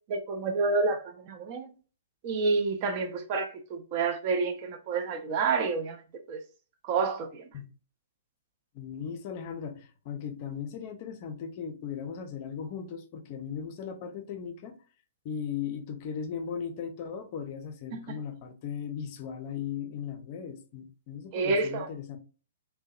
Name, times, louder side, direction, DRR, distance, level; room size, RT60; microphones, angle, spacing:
voice 1, 0.1-1.7 2.2-6.0 6.3-6.4 6.8-7.4 17.9-18.2 21.3-21.9, right 4 dB, 40° right, 0.4 m, -29 dB
voice 2, 8.7-14.8 15.2-22.2, left 7 dB, 40° left, 0.4 m, -37 dB
2.6 x 2.1 x 2.3 m
figure-of-eight pair, 120°, 0 cm